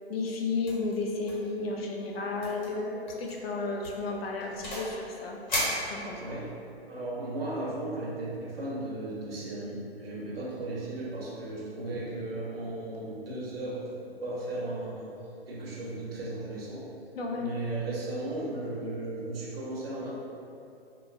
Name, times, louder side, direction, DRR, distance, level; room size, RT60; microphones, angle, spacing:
voice 1, 0.1-5.4 5.9-6.2 17.1-17.5, left 3 dB, 70° left, 1 dB, 0.5 m, -33 dB
sound 1, 0.6-0.9 1.2-1.5 1.8-1.9 2.4-2.7 3.1-3.3 3.8-5.0 5.5-6.5, left 1 dB, 45° left, 1.0 m, -34 dB
voice 2, 6.2-6.5 6.9-15.1 15.5-16.9 17.4-20.1, right 2 dB, 65° right, -4 dB, 0.8 m, -35 dB
3.1 x 2.3 x 2.5 m, 2.6 s
hypercardioid pair, 150°, 32 cm